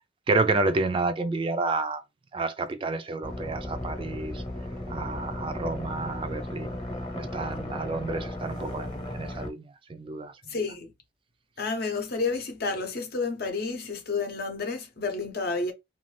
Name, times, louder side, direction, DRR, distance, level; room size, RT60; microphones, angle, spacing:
voice 1, 0.3-2.0 2.3-4.4 4.9-6.8 7.1-10.6, right 3 dB, 30° right, 0.3 m, -30 dB
sound 1, 3.2-9.5, left 1 dB, 25° left, 0.9 m, -35 dB
voice 2, 10.5-10.9 11.6-15.7, left 4 dB, 60° left, 0.7 m, -30 dB
2.5 x 2.3 x 3.2 m
head